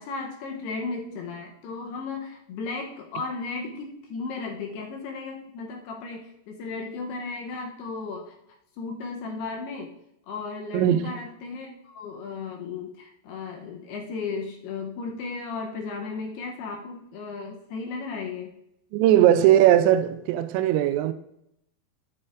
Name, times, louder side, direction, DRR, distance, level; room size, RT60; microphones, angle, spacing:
voice 1, 0.0-8.3 8.8-9.9 10.3-18.5 19.1-19.4, left 4 dB, 75° left, 2.6 m, -35 dB
voice 2, 10.7-11.1 18.9-21.1, right 12 dB, 85° right, 2.8 m, -19 dB
12.0 x 7.3 x 2.5 m
omnidirectional pair, 5.1 m